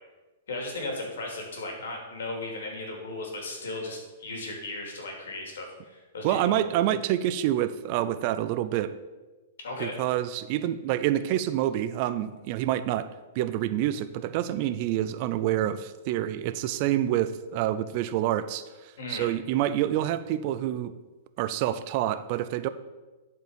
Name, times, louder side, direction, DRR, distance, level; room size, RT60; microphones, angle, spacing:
voice 1, 0.5-6.6 9.6-10.0 19.0-19.3, left 2 dB, 85° left, 1 dB, 2.7 m, -36 dB
voice 2, 6.2-8.9 9.8-13.1 13.4-20.9 21.4-22.7, right 12 dB, 40° right, 13 dB, 0.4 m, -27 dB
11.0 x 4.7 x 5.2 m, 1.2 s
hypercardioid pair, 160°, 0 cm